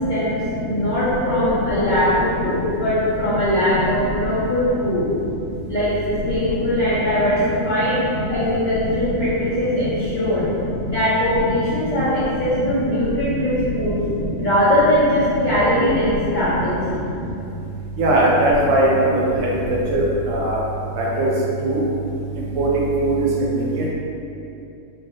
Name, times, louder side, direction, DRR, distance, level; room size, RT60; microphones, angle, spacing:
voice 1, 0.0-5.1 5.7-8.0 8.3-10.4 10.9-14.0 14.4-16.8, left 1 dB, 75° left, -10 dB, 0.4 m, -21 dB
voice 2, 18.0-20.6 21.0-21.3 21.6-21.8 22.6-22.7 23.0-23.3 23.7-23.8, right 1 dB, 85° right, -5 dB, 1.0 m, -19 dB
2.3 x 2.1 x 2.8 m, 2.7 s
omnidirectional pair, 1.4 m